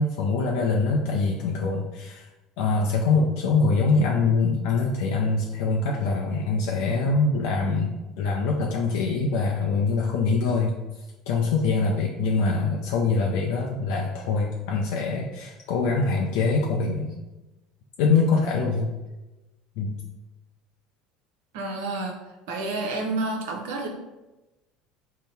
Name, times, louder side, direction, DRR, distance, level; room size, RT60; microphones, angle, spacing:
voice 1, 0.0-2.2 2.6-10.7 11.3-17.1 18.0-18.9 19.8-20.0, left 4 dB, 70° left, -1 dB, 0.4 m, -24 dB
voice 2, 21.5-22.2 22.5-23.9, right 2 dB, 70° right, 2 dB, 0.6 m, -29 dB
3.8 x 2.1 x 4.1 m, 1.1 s
hypercardioid pair, 70°, 0 cm